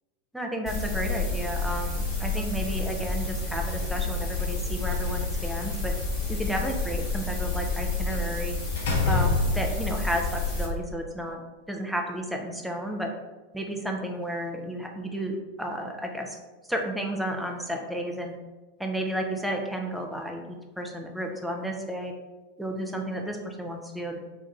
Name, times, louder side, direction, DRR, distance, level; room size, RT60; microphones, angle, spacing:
voice 1, 0.3-5.9 6.3-8.6 9.1-11.4 11.7-13.1 13.5-16.4 16.7-18.4 18.8-22.1 22.6-24.2, right 1 dB, ahead, 2 dB, 0.4 m, -32 dB
sound 1, 0.7-10.7, left 3 dB, 25° left, 0.9 m, -30 dB
Slam, 4.9-6.0 8.1-8.3 8.8-10.0, left 2 dB, 60° left, 0.7 m, -27 dB
2.3 x 2.2 x 2.9 m, 1.2 s
figure-of-eight pair, 90°, 0 cm